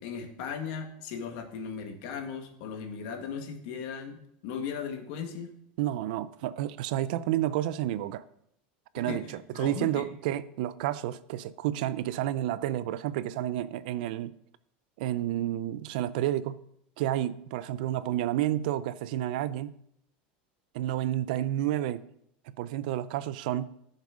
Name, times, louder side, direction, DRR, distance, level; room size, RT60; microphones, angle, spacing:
voice 1, 0.0-5.5 8.9-9.3 9.5-10.0, left 6 dB, 55° left, 1.8 m, -37 dB
voice 2, 5.8-8.2 8.9-14.3 15.0-16.6 17.0-19.8 20.7-22.0 22.6-23.7, right 13 dB, 60° right, 0.5 m, -30 dB
14.0 x 6.5 x 5.0 m
supercardioid pair, 170°, 5 cm